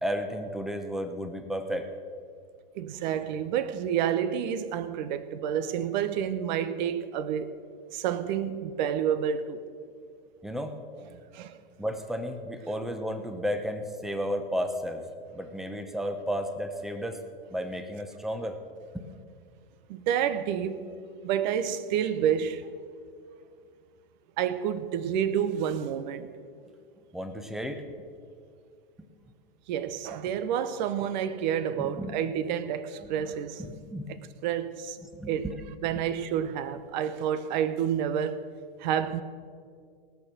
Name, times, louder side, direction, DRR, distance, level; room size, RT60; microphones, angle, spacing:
voice 1, 0.0-1.9 10.4-10.8 11.8-15.0 15.3-17.2 17.5-18.6 18.9-19.1 27.1-27.8 29.0-29.3 30.3-30.4 31.8-32.2 33.2-33.3 33.6-34.1 35.1-35.6 35.9-36.0, equal, ahead, 1.0 m, -33 dB
voice 2, 2.8-7.6 7.9-9.6 11.3-11.6 19.9-20.8 21.2-22.7 24.4-26.3 29.7-33.6 34.4-35.0 35.3-35.5 35.8-38.4 38.8-39.2, right 9 dB, 50° right, 1.0 m, -29 dB
18.5 x 6.8 x 6.2 m
hypercardioid pair, 115°, 29 cm